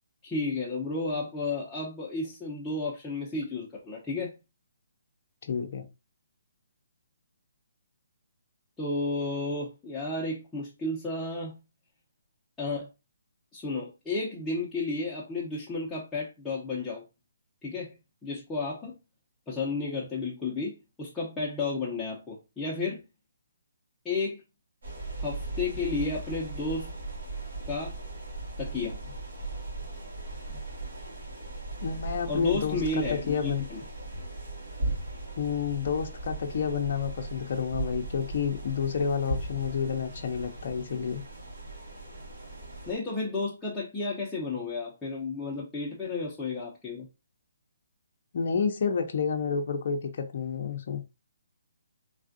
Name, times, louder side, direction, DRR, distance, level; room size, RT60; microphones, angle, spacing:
voice 1, 0.2-4.3 8.8-11.6 12.6-12.9 13.5-17.0 17.6-17.9 18.2-19.0 19.5-23.0 24.0-24.4 25.2-26.9 27.7-28.0 28.6-29.0 32.3-33.8 42.9-47.1, left 3 dB, 5° left, 0.7 m, -32 dB
voice 2, 5.4-5.9 30.5-30.6 31.8-33.6 35.4-41.2 48.3-51.0, left 6 dB, 50° left, 0.6 m, -30 dB
sound 1, 24.8-42.9, right 2 dB, 70° right, 2.0 m, -38 dB
3.3 x 2.4 x 2.6 m
hypercardioid pair, 155°, 0 cm